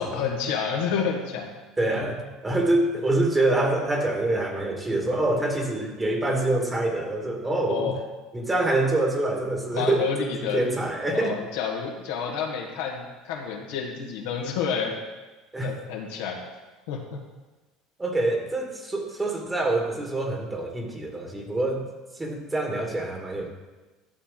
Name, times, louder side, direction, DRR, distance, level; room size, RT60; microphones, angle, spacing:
voice 1, 0.0-1.5 1.9-2.2 7.7-7.9 9.7-10.6 11.1-15.0 15.6-16.4 16.9-17.2, left 6 dB, 75° left, 0 dB, 1.6 m, -29 dB
voice 2, 1.8-7.9 8.3-11.4 15.5-15.7 18.0-21.9 22.2-23.5, right 2 dB, 20° right, 2 dB, 2.2 m, -26 dB
12.0 x 7.0 x 3.9 m, 1.2 s
hypercardioid pair, 70°, 0 cm